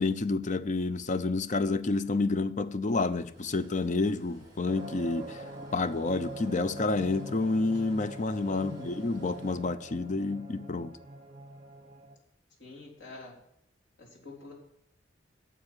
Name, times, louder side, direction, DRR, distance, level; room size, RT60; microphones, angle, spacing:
voice 1, 0.0-5.4 5.7-10.9, left 3 dB, 40° left, 0.6 m, -29 dB
sound 1, 3.3-9.6, right 1 dB, 20° right, 3.8 m, -55 dB
sound 2, 4.7-12.2, right 1 dB, 40° right, 1.5 m, -44 dB
voice 2, 8.5-8.9 12.6-13.4 14.0-14.5, left 2 dB, 90° left, 3.5 m, -45 dB
9.8 x 6.9 x 7.3 m
head